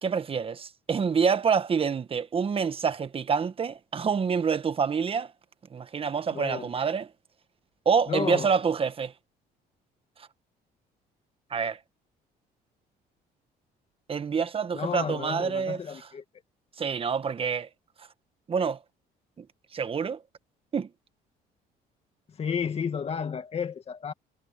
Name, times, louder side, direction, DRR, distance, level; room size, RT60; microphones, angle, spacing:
voice 1, 0.0-5.3 5.7-7.1 7.8-9.1 11.5-11.8 14.1-15.8 16.8-17.7 18.5-18.8 19.4-19.5 19.7-20.2 20.7-20.9, right 6 dB, 35° right, 1.4 m, -27 dB
voice 2, 6.3-6.7 8.1-8.5 14.7-16.2 22.3-24.1, left 6 dB, 35° left, 2.1 m, -32 dB
cardioid pair, 110°, 17 cm